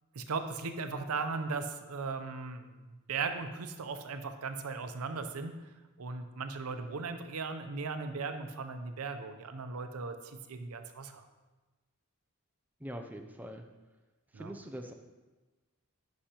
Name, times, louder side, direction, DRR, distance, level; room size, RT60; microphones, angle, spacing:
voice 1, 0.1-2.7 3.1-5.6 6.0-11.3 14.3-14.5, right 4 dB, 75° right, 8 dB, 0.6 m, -37 dB
voice 2, 12.8-13.6 14.3-14.9, equal, 5° right, 4 dB, 0.4 m, -43 dB
10.0 x 5.7 x 2.9 m, 1.2 s
head